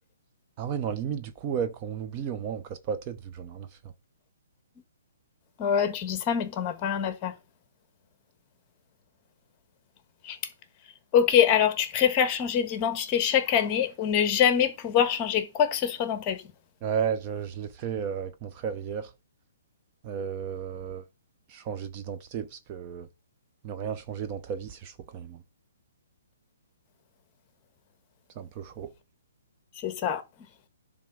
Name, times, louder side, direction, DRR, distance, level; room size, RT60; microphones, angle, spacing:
voice 1, 0.6-3.7 16.8-19.1 20.0-21.0 21.5-23.1 23.6-25.4 28.4-28.9, right 7 dB, 30° right, 0.7 m, -33 dB
voice 2, 5.6-7.3 10.2-10.4 11.1-16.4 29.8-30.2, left 8 dB, 25° left, 1.3 m, -24 dB
10.0 x 3.6 x 6.2 m
hypercardioid pair, 155°, 0 cm